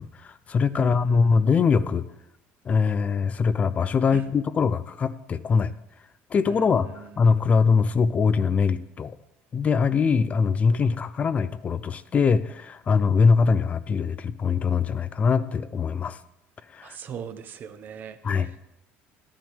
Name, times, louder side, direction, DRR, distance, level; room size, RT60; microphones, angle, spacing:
voice 1, 0.0-2.1 2.7-5.7 6.3-9.1 9.5-16.2 16.7-17.0 18.2-18.5, left 5 dB, 30° left, 15 dB, 0.4 m, -22 dB
voice 2, 0.8-1.2 4.1-4.2 6.6-6.7 6.9-7.4 16.8-18.2, right 8 dB, 45° right, 10 dB, 0.9 m, -38 dB
12.0 x 10.5 x 3.6 m, 0.86 s
cardioid pair, 125°, 5 cm